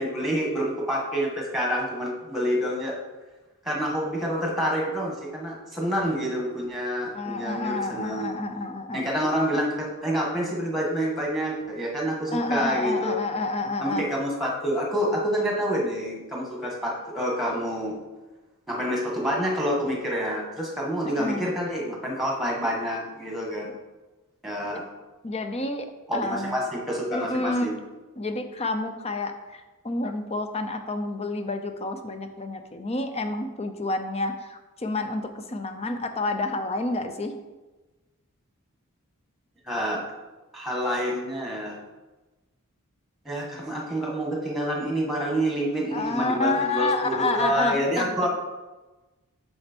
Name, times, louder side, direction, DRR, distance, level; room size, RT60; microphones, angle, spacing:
voice 1, 0.0-3.0 3.6-8.4 8.9-13.1 13.8-18.0 18.7-23.7 24.4-24.9 26.1-27.8 39.6-40.1 40.5-41.8 43.2-48.3, equal, ahead, -2 dB, 1.5 m, -27 dB
voice 2, 7.1-9.0 12.3-14.0 21.0-21.5 25.2-25.9 26.1-26.5 27.1-27.7 28.2-37.4 45.9-48.3, left 2 dB, 30° left, 7 dB, 0.6 m, -29 dB
6.4 x 6.0 x 4.4 m, 1.2 s
head